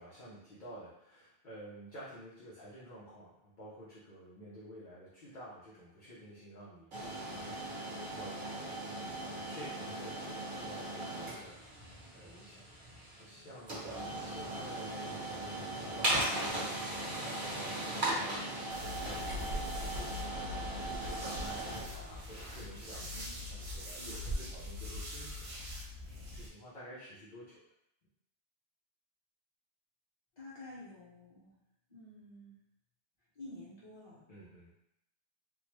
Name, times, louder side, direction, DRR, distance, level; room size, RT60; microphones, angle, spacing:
voice 1, 0.0-25.4 25.8-27.6 34.3-34.7, equal, 50° left, -9 dB, 0.8 m, -51 dB
sound 1, 6.9-23.8, right 1 dB, 55° right, 1.1 m, -39 dB
sound 2, 18.7-26.5, left 1 dB, 80° right, 1.0 m, -42 dB
voice 2, 30.3-31.5 31.9-32.6 33.3-34.3, left 2 dB, 25° left, -9 dB, 1.3 m, -50 dB
3.5 x 2.1 x 3.0 m, 0.80 s
omnidirectional pair, 1.1 m